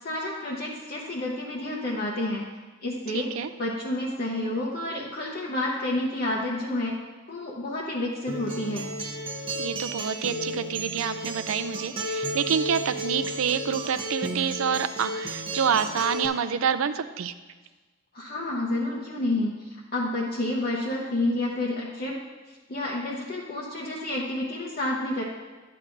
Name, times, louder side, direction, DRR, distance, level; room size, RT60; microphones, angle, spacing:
voice 1, 0.0-2.4 2.8-3.3 3.6-7.0 7.3-8.9 18.1-22.1 22.7-25.2, left 1 dB, 50° left, -3 dB, 0.8 m, -29 dB
voice 2, 3.1-3.5 9.6-17.3, right 7 dB, 90° right, 11 dB, 0.4 m, -27 dB
Acoustic guitar, 8.3-16.3, right 1 dB, 25° right, 0.7 m, -33 dB
10.5 x 8.6 x 2.6 m, 1.3 s
head